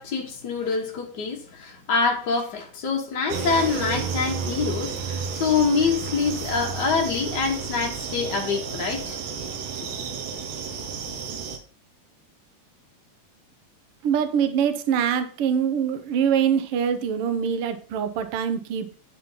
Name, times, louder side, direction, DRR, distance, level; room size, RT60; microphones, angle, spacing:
voice 1, 0.0-9.2, left 5 dB, 65° left, 1.0 m, -25 dB
sound 1, 3.3-11.6, right 5 dB, 90° right, 2.8 m, -32 dB
voice 2, 14.0-18.9, right 8 dB, 60° right, 1.6 m, -24 dB
10.0 x 4.3 x 5.4 m
omnidirectional pair, 3.7 m